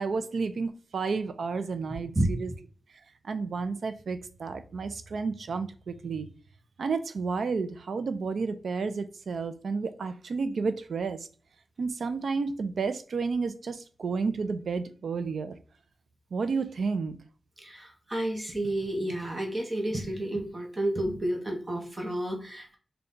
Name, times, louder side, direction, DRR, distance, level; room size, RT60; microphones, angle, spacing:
voice 1, 0.0-2.5 3.2-6.3 6.8-11.3 11.8-15.6 16.3-17.2, right 4 dB, 90° right, 0.4 m, -31 dB
voice 2, 17.6-22.8, right 1 dB, 25° right, 0.8 m, -30 dB
3.9 x 2.3 x 3.7 m
wide cardioid pair, 135°, 0 cm